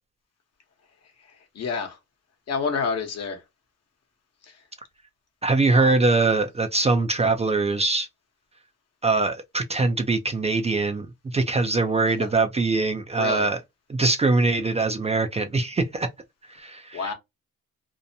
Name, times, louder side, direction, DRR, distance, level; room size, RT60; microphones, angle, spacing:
voice 1, 1.6-2.0 2.5-3.4 5.7-5.9 12.2-12.3 13.2-13.5 16.9-17.1, left 5 dB, 55° left, 1.0 m, -28 dB
voice 2, 5.4-8.1 9.0-13.6 13.9-16.1 16.5-17.1, right 3 dB, 20° right, 0.4 m, -23 dB
2.6 x 2.1 x 2.6 m
cardioid pair, 90°, 30 cm